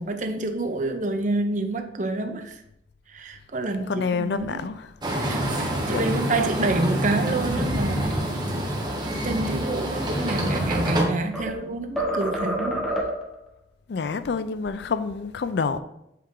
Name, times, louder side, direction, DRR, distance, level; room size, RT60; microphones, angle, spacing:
voice 1, 0.0-2.6 3.1-4.6 5.1-5.5 5.9-8.2 9.2-12.8, right 2 dB, 40° right, 0.6 m, -28 dB
voice 2, 3.8-4.9 5.5-6.4 13.9-15.8, left 5 dB, 60° left, 0.4 m, -28 dB
sound 1, 5.0-11.0, equal, 25° right, 1.0 m, -26 dB
sound 2, 10.3-11.6 12.0-13.4, right 1 dB, ahead, 0.8 m, -29 dB
7.7 x 3.4 x 3.7 m
head